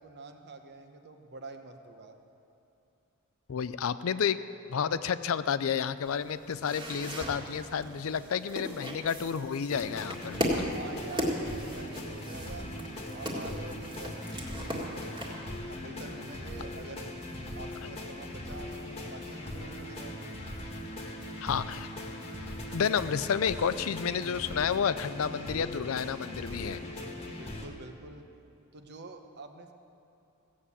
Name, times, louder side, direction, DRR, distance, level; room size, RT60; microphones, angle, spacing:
voice 1, 0.0-2.2 10.7-12.7 13.1-14.2 14.9-15.3 15.7-17.1 17.6-20.4 27.4-28.2 28.7-29.7, right 3 dB, 50° right, 6 dB, 1.0 m, -46 dB
voice 2, 3.5-4.4 4.7-10.7 21.4-21.9 22.7-26.8, left 7 dB, 65° left, 14 dB, 0.4 m, -30 dB
sound 1, 6.0-15.3, equal, 20° right, 1.9 m, -37 dB
sound 2, 9.7-27.7, left 1 dB, 25° left, 1.4 m, -40 dB
16.0 x 7.4 x 8.4 m, 2.7 s
head